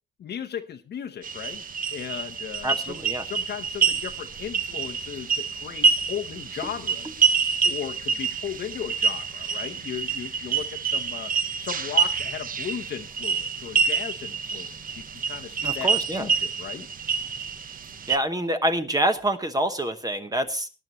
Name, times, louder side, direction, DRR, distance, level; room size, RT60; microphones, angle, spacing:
voice 1, 0.2-1.6 1.9-7.3 7.6-11.3 11.6-16.9, left 9 dB, 55° left, 5 dB, 0.9 m, -36 dB
sound 1, 1.2-18.2, right 6 dB, 45° right, 0.9 m, -27 dB
voice 2, 2.6-3.2 15.6-16.3 18.1-20.7, right 1 dB, 20° right, 8 dB, 1.0 m, -26 dB
19.0 x 10.5 x 3.0 m, 0.30 s
cardioid pair, 90°, 20 cm